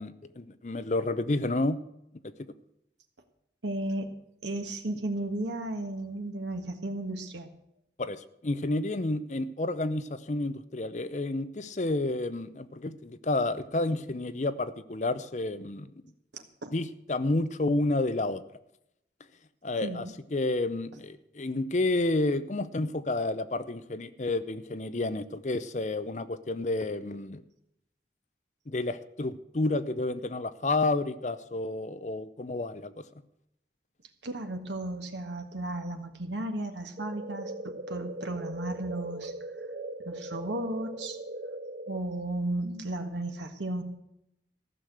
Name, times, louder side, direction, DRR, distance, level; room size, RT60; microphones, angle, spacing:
voice 1, 0.0-1.8 8.0-15.9 16.7-18.4 19.6-20.1 20.3-27.4 28.7-33.0, left 2 dB, 40° left, 13 dB, 0.6 m, -30 dB
voice 2, 3.6-4.1 4.4-7.5 16.3-16.7 19.8-20.1 34.2-39.3 40.0-41.2 41.9-43.8, right 1 dB, 85° right, 6 dB, 1.6 m, -34 dB
sound 1, 37.0-42.0, right 1 dB, 45° right, 0.6 m, -39 dB
15.0 x 6.6 x 7.8 m, 0.80 s
head